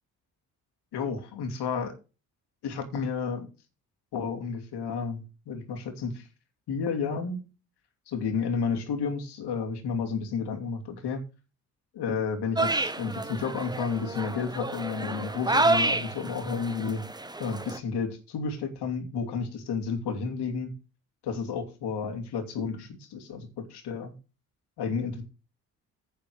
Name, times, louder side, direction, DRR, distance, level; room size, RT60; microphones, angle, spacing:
voice 1, 0.9-1.9 2.6-3.5 4.1-6.3 6.7-7.4 8.1-11.2 11.9-17.0 17.4-20.7 21.2-24.1 24.8-25.2, left 5 dB, 65° left, 4 dB, 2.8 m, -31 dB
sound 1, 12.6-17.8, right 2 dB, 10° right, 1.0 m, -29 dB
10.5 x 5.1 x 6.3 m, 0.31 s
hypercardioid pair, 45°, 43 cm